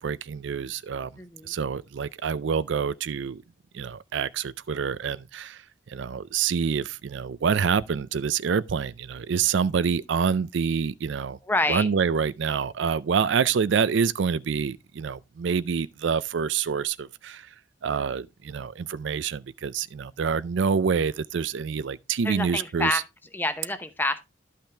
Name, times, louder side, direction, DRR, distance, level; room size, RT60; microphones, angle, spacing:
voice 1, 0.0-1.1 1.5-3.4 3.7-5.6 5.9-11.4 11.7-17.5 17.8-23.0, right 6 dB, 65° right, 0.4 m, -27 dB
voice 2, 1.2-1.5 11.4-11.9 22.2-23.0 23.3-24.2, left 2 dB, 10° left, 0.8 m, -27 dB
12.0 x 5.7 x 3.3 m
head